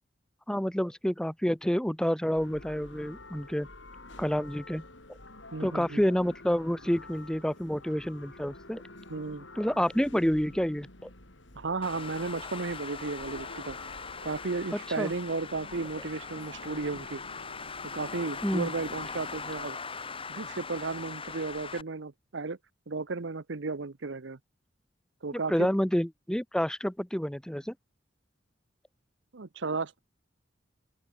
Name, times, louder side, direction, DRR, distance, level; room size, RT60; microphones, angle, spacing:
voice 1, 0.5-3.7 4.2-4.8 5.6-8.8 9.6-11.1 15.0-15.1 18.4-18.7 25.3-27.7, equal, 5° left, 0.7 m, -28 dB
sound 1, 2.3-19.5, left 2 dB, 80° left, 7.6 m, -49 dB
voice 2, 5.5-6.0 9.1-9.5 11.6-13.8 14.2-17.2 17.9-19.8 20.3-22.6 22.9-24.4 25.2-25.7 29.3-30.0, right 3 dB, 75° right, 0.9 m, -34 dB
Traffic noise roadway noise, 11.8-21.8, left 5 dB, 30° left, 3.9 m, -41 dB
open air
head